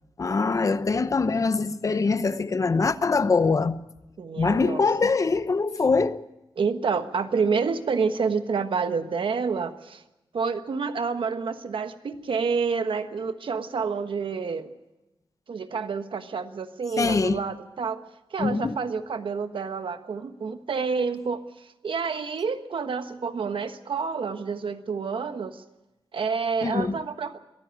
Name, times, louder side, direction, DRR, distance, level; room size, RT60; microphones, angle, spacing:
voice 1, 0.2-3.8 4.4-6.2 17.0-17.4 18.4-18.7 26.6-26.9, left 4 dB, 40° left, 0.8 m, -23 dB
voice 2, 4.2-5.1 6.6-10.0 10.3-14.7 15.5-18.0 18.3-25.6 26.1-27.4, right 5 dB, 80° right, 1.3 m, -28 dB
23.0 x 14.0 x 9.2 m
wide cardioid pair, 175°, 9 cm